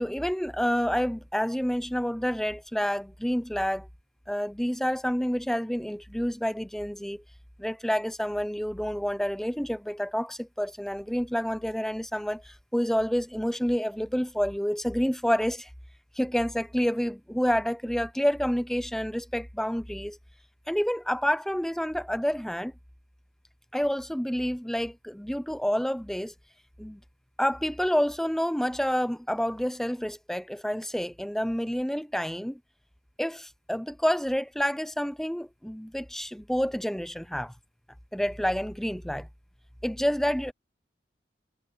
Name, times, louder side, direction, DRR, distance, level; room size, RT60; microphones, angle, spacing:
voice 1, 0.0-3.9 4.3-7.2 7.6-15.7 16.2-20.2 20.7-22.7 23.7-26.3 26.8-27.0 27.4-32.6 33.2-37.5 38.1-39.3 39.8-40.5, equal, ahead, 0.6 m, -28 dB
head